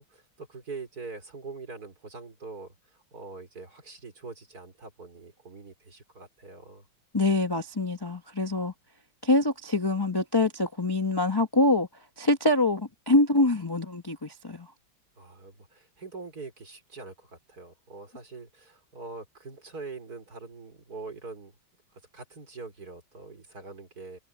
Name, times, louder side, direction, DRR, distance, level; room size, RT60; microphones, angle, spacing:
voice 1, 0.0-6.9 15.2-21.5 21.9-24.2, right 4 dB, 50° right, 4.7 m, -43 dB
voice 2, 7.1-8.7 9.2-11.9 12.2-14.7, left 2 dB, 20° left, 0.8 m, -25 dB
omnidirectional pair, 2.1 m